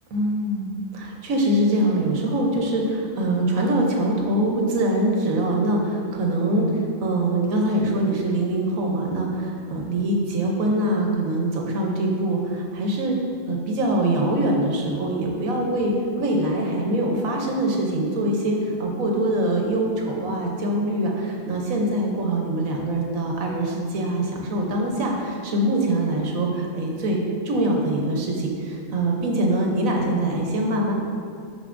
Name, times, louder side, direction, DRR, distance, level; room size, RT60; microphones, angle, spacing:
voice 1, 0.1-0.7 0.9-13.2 13.5-27.2 27.4-30.9, right 1 dB, 80° right, 0 dB, 1.3 m, -23 dB
6.7 x 5.9 x 2.6 m, 2.4 s
omnidirectional pair, 1.4 m